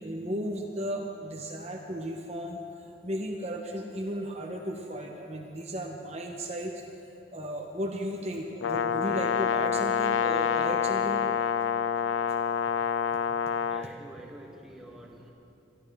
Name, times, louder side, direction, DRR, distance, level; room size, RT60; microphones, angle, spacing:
voice 1, 0.0-2.6 3.0-6.8 7.3-11.2 13.8-13.9, equal, 35° right, 1 dB, 0.9 m, -35 dB
Brass instrument, 8.6-13.9, left 7 dB, 85° left, 0.4 m, -27 dB
voice 2, 13.7-15.3, right 1 dB, ahead, -2 dB, 1.3 m, -47 dB
24.0 x 11.5 x 3.6 m, 2.7 s
head